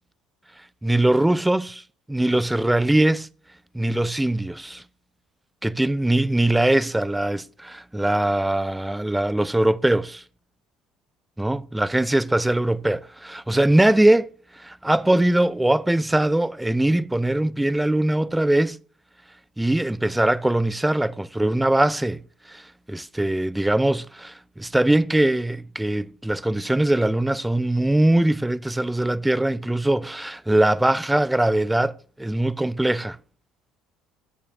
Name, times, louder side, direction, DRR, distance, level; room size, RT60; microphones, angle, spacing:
voice 1, 0.8-1.8 2.1-3.3 3.7-4.8 5.6-10.2 11.4-18.8 19.6-22.2 22.5-22.6 22.9-33.2, right 1 dB, 10° right, 0.4 m, -21 dB
8.4 x 7.3 x 3.6 m
figure-of-eight pair, 60°, 0 cm